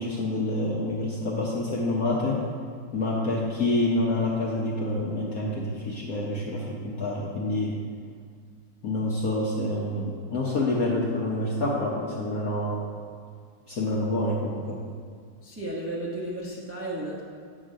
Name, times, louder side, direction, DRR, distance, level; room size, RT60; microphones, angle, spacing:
voice 1, 0.0-2.4 2.9-7.7 8.8-12.8 13.7-14.8, left 1 dB, 55° left, -4 dB, 1.1 m, -27 dB
voice 2, 15.4-17.2, right 1 dB, 15° right, -5 dB, 0.5 m, -33 dB
8.4 x 3.8 x 6.3 m, 2.1 s
omnidirectional pair, 2.3 m